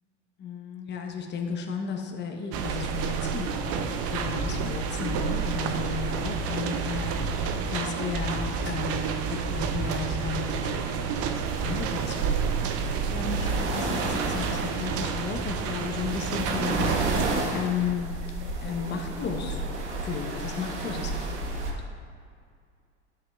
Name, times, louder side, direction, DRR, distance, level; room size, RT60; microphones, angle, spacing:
voice 1, 0.4-3.8 4.1-11.0 11.6-12.4 12.8-18.1 18.6-19.6 20.0-21.7, left 5 dB, 30° left, 3 dB, 0.9 m, -34 dB
sound 1, 2.5-17.3, right 5 dB, 40° right, 0.7 m, -29 dB
sound 2, 11.5-21.7, right 2 dB, 70° right, 1.4 m, -33 dB
10.5 x 8.1 x 2.3 m, 2.2 s
hypercardioid pair, 85°, 36 cm